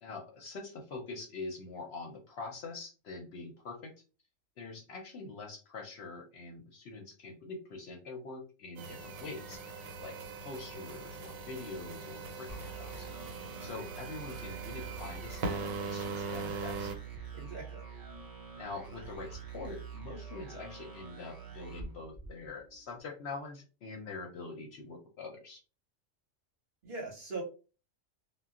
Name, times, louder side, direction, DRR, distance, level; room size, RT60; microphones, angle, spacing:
voice 1, 0.0-3.9 4.6-9.6 10.0-10.2 10.4-13.1 13.6-16.9 18.6-25.6, left 3 dB, 65° left, 2 dB, 0.7 m, -44 dB
sound 1, 8.8-17.0, right 4 dB, 80° right, 1.0 m, -41 dB
sound 2, 12.5-22.8, right 6 dB, 35° right, 0.3 m, -46 dB
voice 2, 17.3-17.8 26.8-27.4, right 3 dB, 50° right, 0 dB, 0.8 m, -40 dB
2.2 x 2.0 x 3.6 m, 0.34 s
omnidirectional pair, 1.4 m